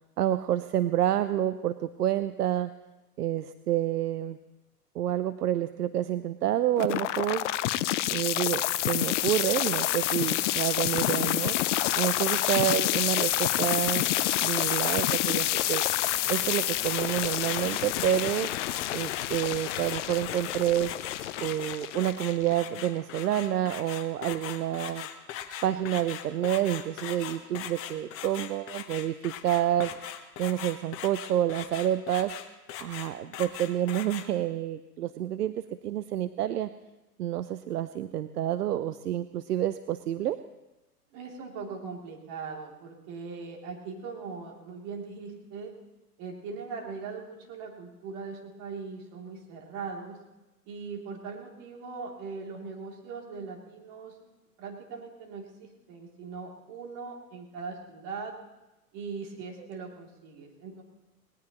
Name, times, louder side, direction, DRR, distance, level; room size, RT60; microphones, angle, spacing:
voice 1, 0.2-2.7 3.2-4.4 4.9-7.4 8.1-11.6 12.0-14.1 14.4-15.8 16.3-18.5 18.9-20.9 21.4-25.1 25.6-29.9 30.4-32.3 32.8-36.7 37.2-40.4, right 12 dB, 75° right, 13 dB, 0.7 m, -28 dB
sound 1, 6.8-22.8, left 14 dB, 50° left, 0.6 m, -28 dB
sound 2, 16.3-34.3, left 10 dB, 30° left, 1.2 m, -40 dB
voice 2, 41.1-45.7 46.2-50.2 50.7-54.1 54.6-58.3 58.9-60.8, right 5 dB, 40° right, 0 dB, 3.1 m, -40 dB
19.5 x 19.0 x 3.1 m, 1.0 s
hypercardioid pair, 115°, 48 cm